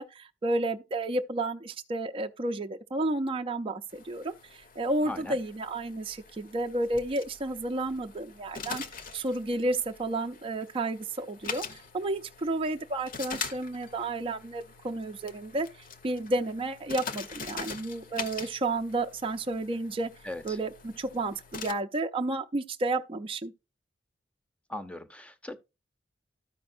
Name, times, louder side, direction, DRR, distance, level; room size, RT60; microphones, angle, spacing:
voice 1, 0.0-8.8 9.1-15.7 16.0-20.1 20.4-23.5, right 2 dB, 30° right, 0.5 m, -31 dB
sound 1, 3.9-21.7, left 5 dB, 50° left, 0.9 m, -43 dB
voice 2, 5.0-5.4 20.2-20.6 24.7-25.6, left 1 dB, 5° left, 0.7 m, -39 dB
13.0 x 5.1 x 2.5 m
head